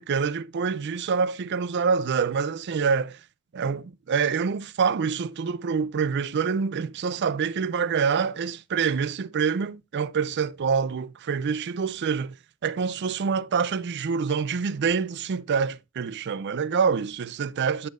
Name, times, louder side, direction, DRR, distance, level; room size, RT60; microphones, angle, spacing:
voice 1, 0.0-3.2 3.5-12.4 12.6-17.9, right 6 dB, 50° right, 0.4 m, -26 dB
11.0 x 5.4 x 2.4 m
head